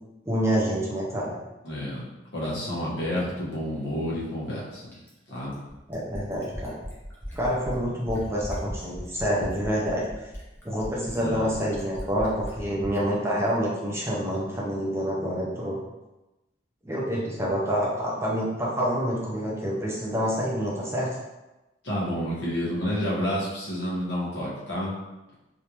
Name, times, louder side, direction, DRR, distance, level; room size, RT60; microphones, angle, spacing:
voice 1, 0.3-1.3 5.9-6.8 7.3-10.0 10.6-15.8 16.8-21.1, equal, 15° right, -5 dB, 0.6 m, -27 dB
voice 2, 1.6-2.1 2.3-4.8 5.3-5.5 11.2-11.6 21.8-24.9, equal, 85° left, -7 dB, 1.2 m, -29 dB
Fill (with liquid), 4.9-13.0 14.3-14.4, equal, 10° left, 1.0 m, -37 dB
3.4 x 2.7 x 2.9 m, 1.0 s
head